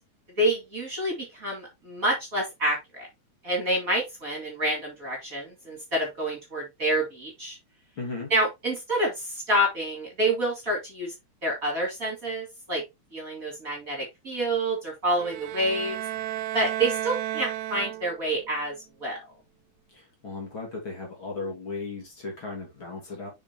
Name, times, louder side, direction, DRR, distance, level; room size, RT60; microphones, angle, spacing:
voice 1, 0.4-3.1 3.4-7.6 8.3-11.1 11.4-12.8 13.1-16.0 16.5-19.2, right 1 dB, 30° right, 2.4 m, -28 dB
voice 2, 8.0-8.3 19.9-23.3, left 3 dB, 45° left, 2.9 m, -36 dB
sound 1, 15.2-18.4, right 13 dB, 85° right, 2.0 m, -33 dB
7.1 x 5.3 x 3.0 m
omnidirectional pair, 3.3 m